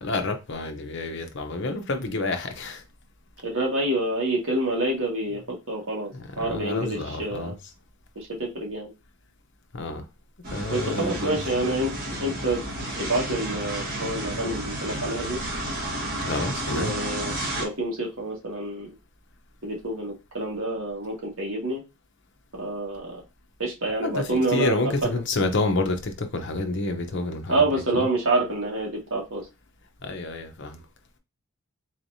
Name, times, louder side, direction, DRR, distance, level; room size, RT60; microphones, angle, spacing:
voice 1, 0.0-2.8 6.1-7.5 9.7-10.0 10.5-11.4 16.2-16.9 24.0-28.0 30.0-30.8, left 2 dB, 55° left, 0.8 m, -29 dB
voice 2, 3.4-6.1 6.4-7.5 8.2-8.9 10.7-11.9 12.2-12.6 12.9-15.4 16.7-17.3 17.6-18.9 19.6-21.8 22.5-23.2 23.6-25.1 27.5-29.4, right 2 dB, 65° right, 1.7 m, -27 dB
sound 1, 10.4-17.6, right 1 dB, 40° right, 1.5 m, -32 dB
4.1 x 3.2 x 2.7 m
head